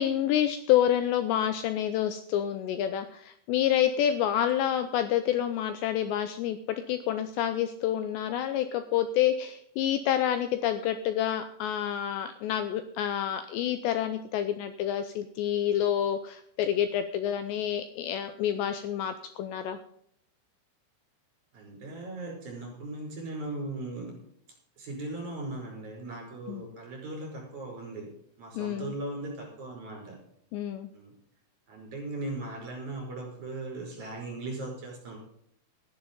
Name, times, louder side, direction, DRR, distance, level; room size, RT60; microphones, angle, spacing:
voice 1, 0.0-19.8 26.5-26.6 28.6-28.9 30.5-30.9, left 10 dB, 85° left, 10 dB, 2.6 m, -28 dB
voice 2, 21.5-24.1 24.8-28.1 28.4-30.2 30.9-31.1 31.7-35.2, right 2 dB, 40° right, 0 dB, 6.4 m, -38 dB
13.0 x 10.5 x 5.4 m, 0.68 s
omnidirectional pair, 5.6 m